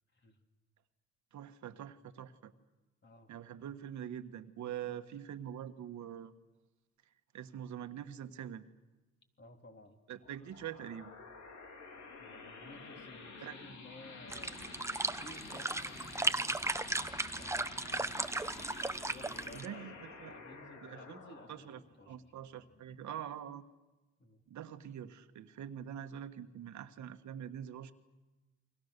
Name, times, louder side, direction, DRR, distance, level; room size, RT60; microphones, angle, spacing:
voice 1, 1.3-2.5 3.3-6.3 7.3-8.6 10.1-11.1 13.4-13.6 19.5-20.3 20.8-21.2 21.5-21.8 22.1-23.6 24.5-27.9, right 10 dB, 70° right, 8 dB, 1.5 m, -44 dB
voice 2, 3.0-3.3 9.4-10.0 12.2-14.6 15.0-18.8 19.0-21.7 22.0-22.3 24.2-24.4, left 1 dB, 35° left, 4 dB, 3.6 m, -56 dB
sound 1, 10.2-23.3, left 4 dB, 70° left, 4.3 m, -51 dB
sound 2, 14.3-19.7, right 2 dB, 10° right, 0.9 m, -36 dB
29.5 x 24.0 x 6.8 m, 1.1 s
cardioid pair, 90°, 30 cm